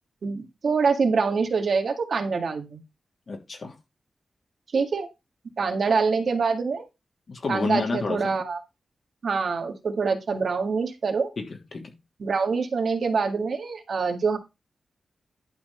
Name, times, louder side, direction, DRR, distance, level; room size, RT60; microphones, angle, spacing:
voice 1, 0.2-2.8 4.7-5.1 5.6-6.9 7.5-8.6 9.2-11.3 12.2-14.4, right 5 dB, 65° right, 1.8 m, -25 dB
voice 2, 3.3-3.8 7.3-8.4 11.4-12.0, left 4 dB, 50° left, 3.0 m, -30 dB
11.5 x 4.4 x 5.6 m
wide cardioid pair, 140°, 0 cm